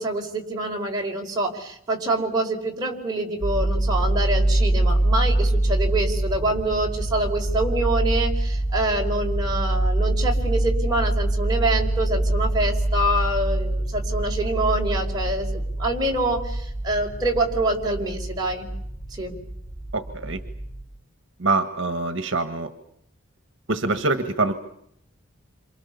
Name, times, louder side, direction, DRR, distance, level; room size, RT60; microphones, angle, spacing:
voice 1, 0.0-18.7 19.1-19.3, right 1 dB, 20° right, 0 dB, 4.9 m, -26 dB
sound 1, 3.4-20.8, right 1 dB, 10° left, 4.4 m, -25 dB
voice 2, 19.9-20.4 21.4-22.7 23.7-24.5, right 3 dB, 65° right, 8 dB, 1.6 m, -24 dB
28.5 x 27.5 x 7.1 m, 0.73 s
head